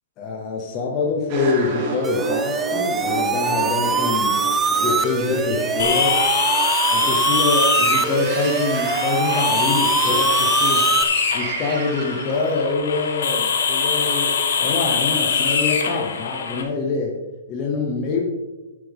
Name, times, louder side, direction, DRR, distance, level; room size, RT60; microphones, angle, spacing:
voice 1, 0.2-4.4 4.7-6.2 6.9-10.9 11.3-17.2 17.5-18.2, left 4 dB, 20° left, -1 dB, 1.0 m, -25 dB
sound 1, 1.3-12.7, right 3 dB, 25° right, 1.5 m, -31 dB
sound 2, 2.0-11.0, right 5 dB, 5° right, 0.3 m, -23 dB
sound 3, 5.8-16.6, left 6 dB, 65° left, 1.9 m, -23 dB
11.0 x 9.5 x 3.6 m, 1.2 s
hypercardioid pair, 180°, 0 cm